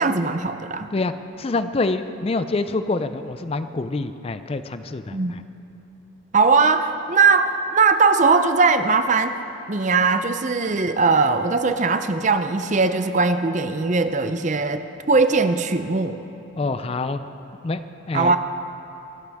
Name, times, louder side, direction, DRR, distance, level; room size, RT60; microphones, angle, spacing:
voice 1, 0.0-0.9 5.1-5.3 6.3-9.3 9.7-16.2 18.1-18.4, right 4 dB, 35° right, 9 dB, 0.5 m, -20 dB
voice 2, 0.9-5.4 16.6-17.2 17.6-17.8 18.1-18.4, left 3 dB, 30° left, 11 dB, 0.4 m, -26 dB
24.5 x 12.5 x 3.5 m, 2.9 s
head